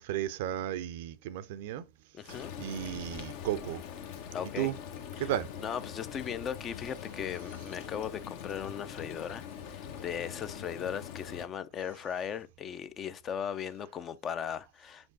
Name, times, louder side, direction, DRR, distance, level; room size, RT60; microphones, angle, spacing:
voice 1, 0.0-1.8 2.3-3.8 4.4-4.7 5.2-5.5, right 12 dB, 55° right, 0.5 m, -34 dB
voice 2, 2.1-2.5 4.3-4.7 5.2-5.3 5.6-15.1, left 8 dB, 30° left, 0.5 m, -38 dB
Frying (food), 2.3-11.5, left 8 dB, 50° left, 1.0 m, -43 dB
5.7 x 5.3 x 3.9 m
figure-of-eight pair, 90°, 0 cm